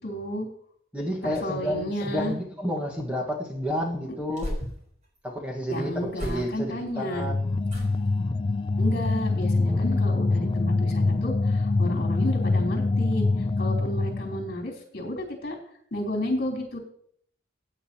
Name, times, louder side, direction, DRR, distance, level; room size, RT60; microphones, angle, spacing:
voice 1, 0.0-0.5 1.2-2.3 5.7-7.3 8.8-13.3 13.6-15.6 15.9-16.8, left 1 dB, 55° left, 0 dB, 3.2 m, -31 dB
voice 2, 0.9-4.5 5.2-7.6 9.7-10.0, equal, 5° right, -2 dB, 1.4 m, -31 dB
sound 1, 4.1-5.2 6.1-6.9 7.6-8.2 8.6-9.0 9.3-9.4, left 1 dB, 40° right, 4.0 m, -38 dB
sound 2, 7.2-14.5, left 3 dB, 25° left, 0.3 m, -25 dB
15.5 x 9.1 x 2.9 m, 0.63 s
head